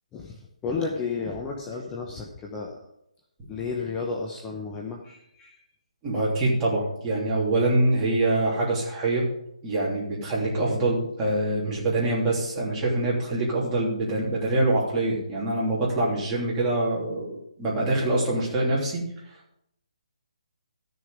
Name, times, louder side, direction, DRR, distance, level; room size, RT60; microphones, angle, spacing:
voice 1, 0.1-2.9 3.5-5.6, left 4 dB, 15° left, 0 dB, 1.0 m, -32 dB
voice 2, 6.0-9.2 9.6-19.0, right 2 dB, 15° right, -5 dB, 3.3 m, -25 dB
14.0 x 6.8 x 5.1 m, 0.77 s
hypercardioid pair, 160°, 4 cm